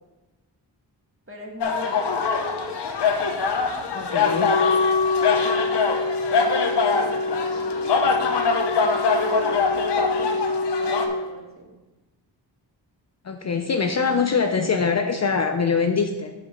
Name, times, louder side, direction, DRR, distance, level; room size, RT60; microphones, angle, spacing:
voice 1, 1.3-2.3 4.0-4.3 5.1-5.7 6.3-7.9 8.8-10.4 10.8-11.8, right 1 dB, 30° right, 0 dB, 1.6 m, -40 dB
sound 1, 1.6-11.1, left 5 dB, 70° left, 0.9 m, -24 dB
voice 2, 3.9-4.5 13.2-16.3, left 5 dB, 40° left, 6 dB, 0.5 m, -23 dB
Wind instrument woodwind instrument, 4.2-11.2, left 3 dB, 85° left, 0.5 m, -26 dB
5.5 x 5.1 x 6.3 m, 1.1 s
cardioid pair, 80°, 43 cm